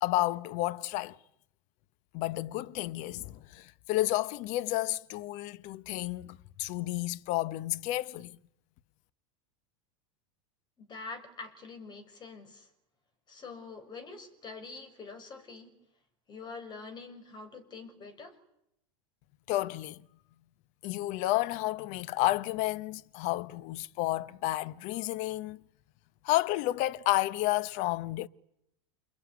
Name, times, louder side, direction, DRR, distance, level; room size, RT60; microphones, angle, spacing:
voice 1, 0.0-1.2 2.1-8.4 19.5-20.0 20.8-25.6 26.2-28.3, left 16 dB, 50° left, 1.0 m, -31 dB
voice 2, 10.8-12.7 13.3-15.8 16.3-18.4, left 4 dB, 30° left, 6.3 m, -45 dB
29.0 x 21.0 x 9.7 m
hypercardioid pair, 115°, 16 cm